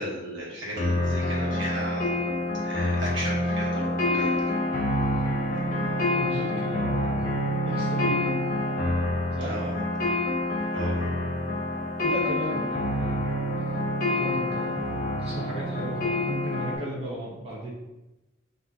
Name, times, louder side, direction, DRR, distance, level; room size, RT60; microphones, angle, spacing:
voice 1, 0.0-2.1 2.6-4.5 9.4-9.8 10.7-11.1, right 1 dB, 70° right, -4 dB, 1.4 m, -35 dB
sound 1, 0.8-16.8, left 1 dB, 45° left, 1.0 m, -27 dB
voice 2, 6.2-7.4 7.6-8.3 9.3-9.5 12.0-13.2 14.1-14.8 15.2-17.7, right 1 dB, 30° right, -5 dB, 0.9 m, -35 dB
6.2 x 2.7 x 2.8 m, 1.0 s
head